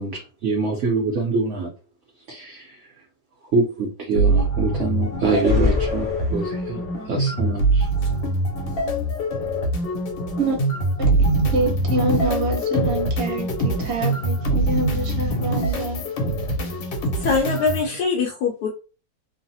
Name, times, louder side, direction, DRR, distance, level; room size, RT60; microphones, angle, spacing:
voice 1, 0.0-1.7 2.3-2.6 3.5-6.8 7.1-7.9, right 3 dB, 65° right, 0.7 m, -24 dB
sound 1, 4.1-17.9, right 1 dB, 90° left, 1.5 m, -23 dB
sound 2, 5.2-6.9, left 4 dB, 10° right, 0.4 m, -25 dB
voice 2, 11.5-16.0, right 2 dB, 45° right, 1.0 m, -26 dB
voice 3, 17.2-18.7, left 4 dB, 75° left, 1.1 m, -22 dB
3.1 x 2.0 x 2.6 m
omnidirectional pair, 2.0 m